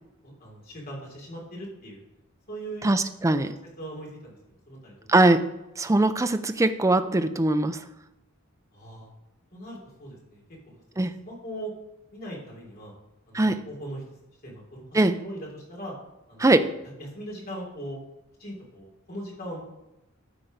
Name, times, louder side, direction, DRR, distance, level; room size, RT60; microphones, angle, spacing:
voice 1, 0.2-2.0 2.5-2.9 3.3-3.4 3.8-5.1 8.7-9.1 9.5-11.7 12.1-12.9 13.3-14.0 14.4-14.8 15.1-15.9 16.3-16.4 17.0-18.0 18.4-19.6, right 1 dB, 45° left, -2 dB, 3.3 m, -40 dB
voice 2, 2.8-3.5 5.1-5.4 5.8-7.8 11.0-11.1 13.3-13.6 14.9-15.1 16.4-16.7, right 2 dB, 15° right, 10 dB, 0.4 m, -21 dB
13.0 x 4.5 x 5.1 m, 0.94 s
head